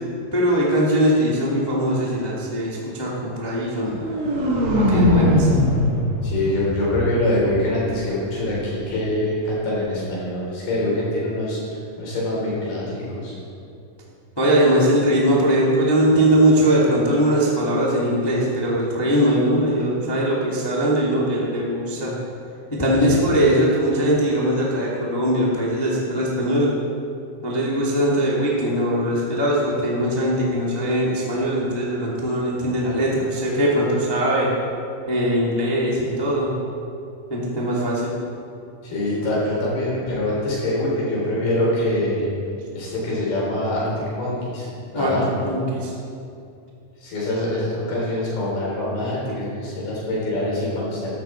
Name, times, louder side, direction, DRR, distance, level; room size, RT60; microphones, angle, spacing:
voice 1, 0.3-4.0 4.7-5.5 14.4-22.2 22.8-26.7 27.4-34.5 35.1-36.5 37.3-38.1 44.9-45.9, right 1 dB, 25° left, -5 dB, 0.4 m, -20 dB
sound 1, 3.8-7.8, left 1 dB, 60° right, 4.0 m, -21 dB
voice 2, 6.2-11.6 12.0-13.4 23.1-23.3 38.8-42.3 42.7-44.7 44.9-45.4 47.0-51.1, left 1 dB, 60° left, -6 dB, 5.9 m, -24 dB
14.5 x 12.5 x 4.5 m, 2.6 s
omnidirectional pair, 4.9 m